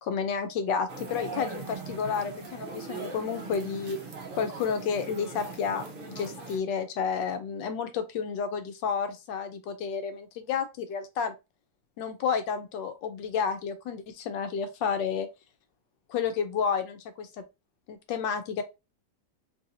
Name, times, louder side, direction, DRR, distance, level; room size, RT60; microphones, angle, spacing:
voice 1, 0.0-4.0 4.3-11.3 12.0-15.3 16.1-17.3 17.9-18.6, left 6 dB, 85° left, 1.3 m, -31 dB
sound 1, 0.9-6.6, right 3 dB, 85° right, 0.4 m, -40 dB
3.2 x 2.7 x 2.6 m
omnidirectional pair, 1.9 m